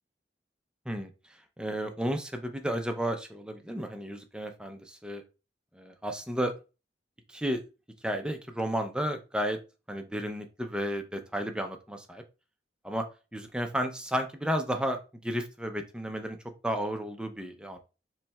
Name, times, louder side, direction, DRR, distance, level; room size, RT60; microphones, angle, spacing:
voice 1, 1.6-5.2 5.7-6.6 7.3-7.6 8.0-9.6 9.9-12.2 12.8-13.1 13.3-16.4 16.6-17.8, equal, 5° right, 5 dB, 0.5 m, -32 dB
7.2 x 3.2 x 2.3 m, 0.31 s
head